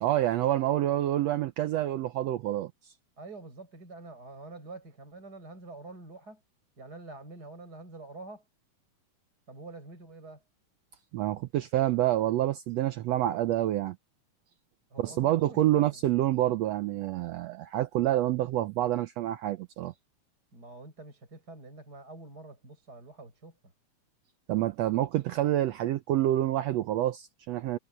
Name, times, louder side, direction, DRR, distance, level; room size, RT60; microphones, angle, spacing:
voice 1, 0.0-2.9 11.1-14.0 15.0-19.9 24.5-27.8, right 13 dB, 85° right, 1.5 m, -27 dB
voice 2, 3.2-6.4 6.8-8.4 9.5-10.4 14.9-16.0 20.5-23.6, right 3 dB, 30° right, 6.8 m, -46 dB
omnidirectional pair, 3.7 m